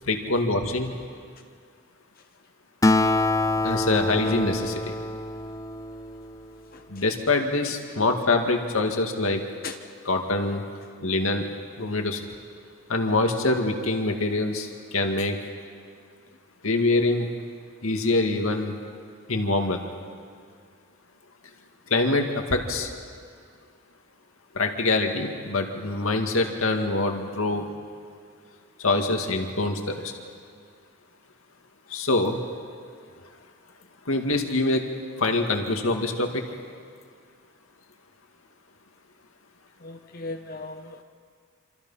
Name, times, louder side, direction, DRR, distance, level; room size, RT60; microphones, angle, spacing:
voice 1, 0.1-0.9 3.6-4.9 6.9-9.4 10.1-10.6 11.0-11.5 11.8-12.2 12.9-15.4 16.6-17.3 17.8-18.8 19.3-19.8 21.9-22.9 24.5-27.7 28.8-30.1 31.9-32.4 34.1-34.9 35.2-36.4, left 2 dB, 80° left, 4 dB, 2.2 m, -24 dB
Acoustic guitar, 2.8-6.5, left 2 dB, 15° left, 0.5 m, -25 dB
voice 2, 6.7-7.0 9.6-9.8 16.3-16.4 31.9-32.0 33.2-33.3 39.8-41.0, left 3 dB, 45° left, 5 dB, 0.9 m, -39 dB
27.0 x 27.0 x 5.7 m, 2.1 s
head